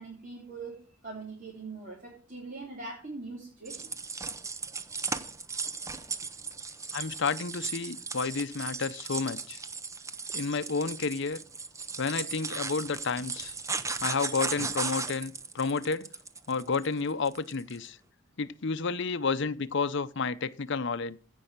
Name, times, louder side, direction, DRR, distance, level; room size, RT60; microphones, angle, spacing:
voice 1, 0.0-4.2, right 3 dB, 40° right, 3.0 m, -42 dB
sound 1, 3.7-17.8, right 4 dB, 15° right, 0.7 m, -36 dB
voice 2, 6.9-9.6 10.3-11.4 12.0-13.5 14.0-16.1 16.5-18.0 18.4-21.2, left 4 dB, 60° left, 0.7 m, -31 dB
16.0 x 5.5 x 7.3 m
head